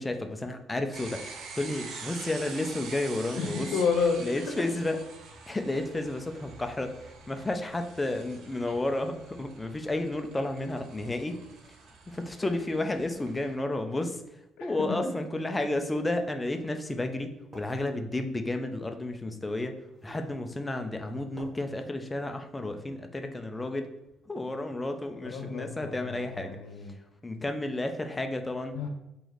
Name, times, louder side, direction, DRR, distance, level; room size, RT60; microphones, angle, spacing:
voice 1, 0.0-3.7 4.2-5.0 5.5-6.9 7.3-11.4 12.1-14.2 14.6-19.7 20.0-23.9 24.3-26.6 27.2-28.8, left 2 dB, 10° left, 6 dB, 0.4 m, -32 dB
sound 1, 0.9-13.5, right 4 dB, 65° right, 0.6 m, -46 dB
voice 2, 3.3-4.3 14.6-14.7 25.1-26.9 28.7-28.9, left 5 dB, 80° left, 5 dB, 0.7 m, -30 dB
sound 2, 15.8-16.0 16.9-17.0 17.5-17.8 19.1-19.2 19.9-20.3 20.8-20.9 21.4-21.5, right 1 dB, 10° right, 0.9 m, -49 dB
3.1 x 3.0 x 3.9 m, 0.90 s
cardioid pair, 150°, 0 cm